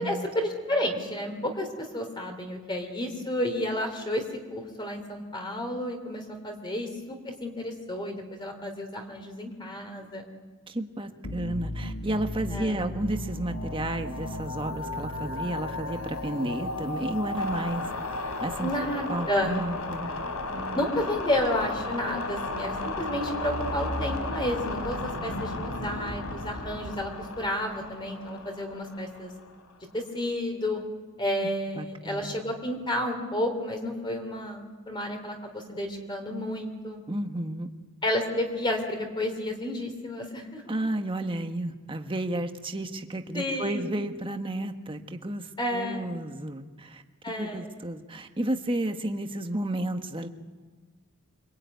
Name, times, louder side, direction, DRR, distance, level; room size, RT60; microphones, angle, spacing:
voice 1, 0.0-4.2 4.5-10.2 12.5-12.9 18.6-19.7 20.7-29.3 29.9-30.8 31.2-37.0 38.0-40.7 43.3-43.9 45.6-46.2 47.2-47.7, left 1 dB, 20° left, 4 dB, 3.0 m, -31 dB
voice 2, 10.7-17.9 18.4-18.7 19.1-20.1 20.5-20.8 31.8-32.5 37.1-37.7 40.7-47.0 47.4-50.3, right 1 dB, 25° right, 6 dB, 1.4 m, -32 dB
sound 1, 11.2-29.7, left 2 dB, 85° left, 3.2 m, -34 dB
25.0 x 24.5 x 9.4 m, 1.4 s
head